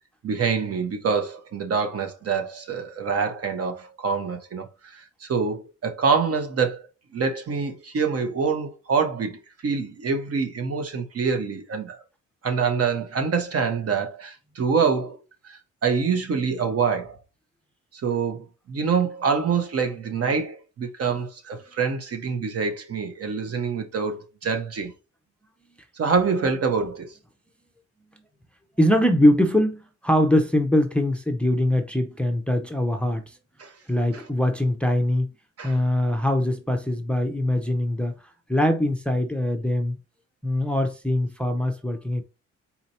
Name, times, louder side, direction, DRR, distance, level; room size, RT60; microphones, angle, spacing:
voice 1, 0.2-6.9 7.1-12.0 12.4-15.2 15.4-17.2 17.9-24.9 26.0-27.2 33.6-33.7 34.1-34.2 35.6-35.8, right 5 dB, 50° right, 1.0 m, -26 dB
voice 2, 28.8-33.2 33.9-35.3 35.6-38.1 38.5-39.9 40.4-42.2, left 1 dB, 5° left, 0.6 m, -22 dB
4.3 x 2.8 x 4.1 m
cardioid pair, 90°, 30 cm